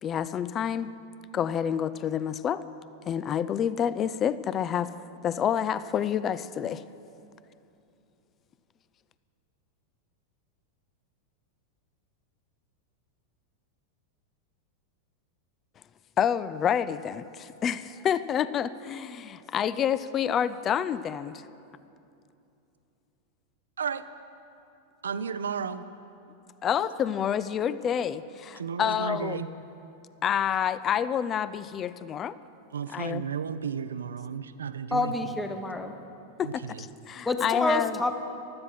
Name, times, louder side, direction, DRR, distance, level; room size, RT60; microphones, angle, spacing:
voice 1, 0.0-0.9 1.3-2.6 3.1-4.9 5.2-6.8 16.2-21.4 26.6-29.4 30.2-32.3 32.9-33.2 36.4-38.0, left 8 dB, 30° left, 16 dB, 0.4 m, -28 dB
voice 2, 25.0-25.9 28.6-29.5 32.7-35.1 36.4-36.9, right 7 dB, 70° right, 13 dB, 0.6 m, -33 dB
voice 3, 34.9-36.0 37.2-38.1, left 2 dB, 10° left, 6 dB, 1.1 m, -28 dB
15.5 x 12.5 x 5.9 m, 2.7 s
figure-of-eight pair, 90°, 0 cm